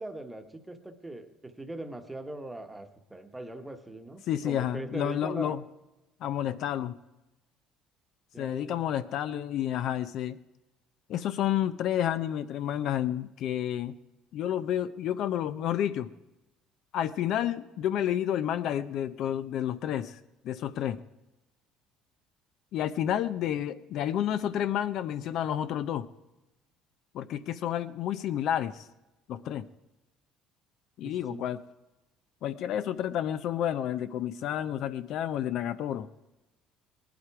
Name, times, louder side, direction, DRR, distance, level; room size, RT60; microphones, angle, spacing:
voice 1, 0.0-5.6 8.3-8.8 31.0-31.4, right 2 dB, 10° right, 6 dB, 1.1 m, -41 dB
voice 2, 4.3-5.6 6.2-7.0 8.4-10.4 11.1-13.9 14.3-16.1 16.9-20.2 20.4-21.0 22.7-26.1 27.1-28.9 29.3-29.7 31.0-31.6 32.4-36.1, left 10 dB, 55° left, 13 dB, 0.5 m, -30 dB
18.5 x 11.5 x 4.7 m, 1.0 s
cardioid pair, 145°, 0 cm